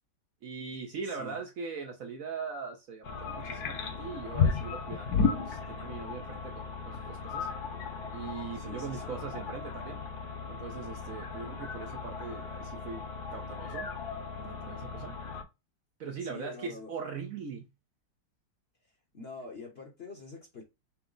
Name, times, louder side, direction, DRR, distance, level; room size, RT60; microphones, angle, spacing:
voice 1, 0.4-7.5 8.1-10.0 10.5-13.0 13.3-13.9 14.3-15.2 16.0-17.7, right 5 dB, 60° right, 0.9 m, -41 dB
voice 2, 1.0-1.4 8.5-9.1 16.2-16.9 19.1-20.6, left 4 dB, 45° left, 0.9 m, -45 dB
sound 1, 3.0-15.4, left 5 dB, 65° left, 1.3 m, -35 dB
5.8 x 2.1 x 3.8 m
omnidirectional pair, 1.9 m